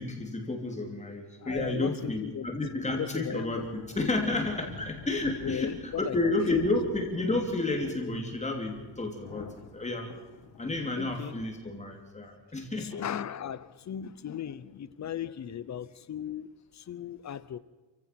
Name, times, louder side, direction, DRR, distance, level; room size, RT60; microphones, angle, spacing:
voice 1, 0.0-10.1 10.6-13.0, left 2 dB, 15° left, 2 dB, 3.0 m, -31 dB
voice 2, 1.4-3.6 5.4-6.3 11.0-11.3 12.5-12.6 12.8-17.6, left 9 dB, 40° left, 16 dB, 0.9 m, -37 dB
sound 1, 3.5-11.6, left 7 dB, 70° left, 2.3 m, -48 dB
28.5 x 16.0 x 5.9 m, 1.2 s
wide cardioid pair, 170°, 44 cm